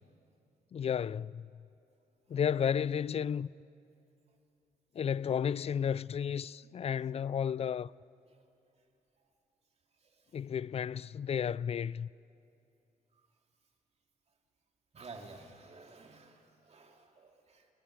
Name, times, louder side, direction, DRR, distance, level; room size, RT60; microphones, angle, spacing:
voice 1, 0.7-1.5 2.3-3.5 5.0-7.9 10.3-12.1, left 8 dB, 45° left, 0.4 m, -32 dB
voice 2, 10.0-10.4 14.9-17.7, right 3 dB, 45° right, 2.7 m, -53 dB
30.0 x 20.0 x 4.9 m
supercardioid pair, 65°, 15 cm